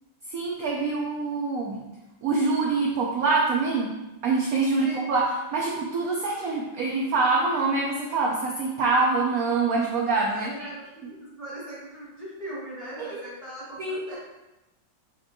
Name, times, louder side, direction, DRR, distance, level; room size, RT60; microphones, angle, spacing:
voice 1, 0.3-1.8 2.2-4.0 4.2-10.5 13.0-13.2 13.8-14.2, right 3 dB, 70° right, -3 dB, 0.8 m, -25 dB
voice 2, 4.8-5.1 10.1-14.2, right 1 dB, 25° left, -9 dB, 1.0 m, -40 dB
4.3 x 3.2 x 2.6 m, 1.0 s
omnidirectional pair, 1.9 m